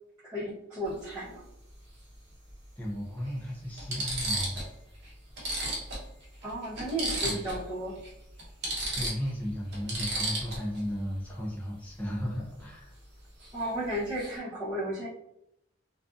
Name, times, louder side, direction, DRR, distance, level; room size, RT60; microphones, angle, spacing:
voice 1, 0.2-1.4 6.4-8.0 13.5-15.1, right 1 dB, 20° right, -14 dB, 0.9 m, -34 dB
sound 1, 0.8-1.0 2.5-2.6 3.3-3.4 3.8-4.7 5.0-5.1 5.4-7.7 8.0-8.1 8.4-10.8 13.4-13.6 13.9-14.4, right 1 dB, 55° right, 0.8 m, -33 dB
voice 2, 2.8-4.6 7.2-7.4 8.9-12.9, equal, 10° left, -4 dB, 0.4 m, -35 dB
2.5 x 2.2 x 2.5 m, 0.81 s
head